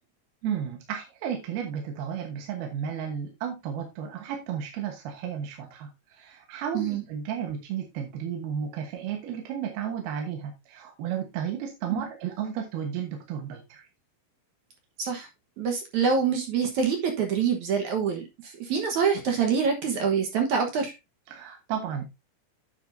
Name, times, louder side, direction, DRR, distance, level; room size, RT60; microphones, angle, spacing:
voice 1, 0.4-13.9 21.3-22.0, right 8 dB, 80° right, 3 dB, 3.1 m, -33 dB
voice 2, 15.6-20.9, right 6 dB, 60° right, 3 dB, 2.2 m, -26 dB
9.8 x 7.6 x 2.6 m, 0.23 s
omnidirectional pair, 4.4 m